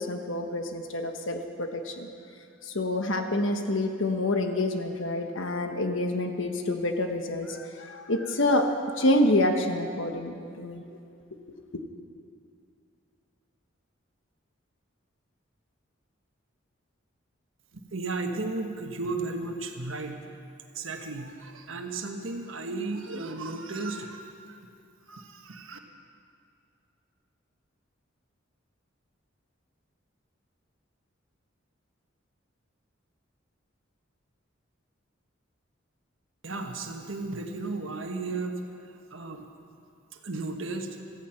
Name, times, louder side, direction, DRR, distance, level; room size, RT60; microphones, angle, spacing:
voice 1, 0.0-2.1 2.6-10.8, left 1 dB, 70° left, 5 dB, 1.3 m, -27 dB
voice 2, 17.7-20.2 20.7-24.2 24.5-24.6 25.1-25.8 36.4-38.6 39.1-39.5 40.2-41.0, right 3 dB, 80° right, 4 dB, 1.3 m, -34 dB
16.5 x 14.0 x 5.9 m, 2.5 s
head